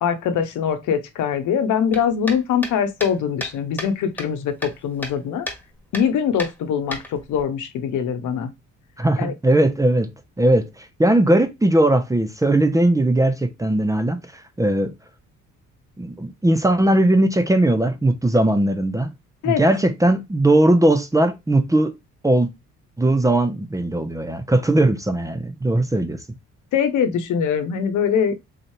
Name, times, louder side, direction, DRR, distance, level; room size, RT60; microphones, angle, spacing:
voice 1, 0.0-5.5 5.9-8.5 9.2-9.3 19.4-19.6 26.7-28.4, left 7 dB, 80° left, 0.9 m, -22 dB
sound 1, 1.9-5.2 5.5-5.6 5.9-6.1 6.4-7.4, left 1 dB, 5° left, 1.3 m, -32 dB
voice 2, 9.0-10.1 10.4-14.2 14.6-14.9 16.0-19.1 19.4-21.9 22.2-22.5 23.0-26.2, right 1 dB, 10° right, 0.6 m, -19 dB
4.0 x 3.2 x 2.7 m
cardioid pair, 90°, 30 cm